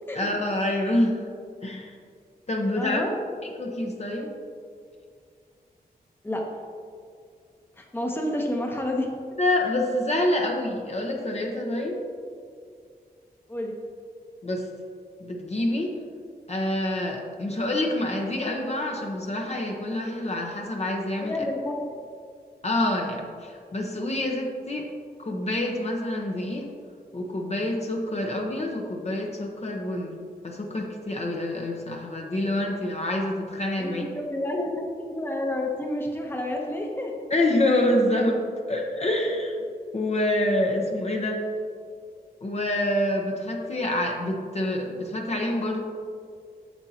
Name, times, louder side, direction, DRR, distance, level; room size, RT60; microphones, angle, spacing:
voice 1, 0.1-1.2 1.6-1.9 2.5-3.0 3.6-4.3 9.4-12.0 14.4-14.7 15.2-16.0 16.5-21.4 22.6-24.9 25.2-26.7 27.1-30.2 30.4-34.1 37.3-38.4 38.7-39.6 39.9-41.4 42.4-45.8, left 1 dB, 40° left, 0 dB, 1.0 m, -27 dB
voice 2, 2.8-3.1 6.2-6.4 7.8-9.1 13.5-13.7 21.2-21.7 33.8-37.1, left 1 dB, 15° left, 0 dB, 1.0 m, -29 dB
8.8 x 6.8 x 2.9 m, 2.2 s
cardioid pair, 75°, 17 cm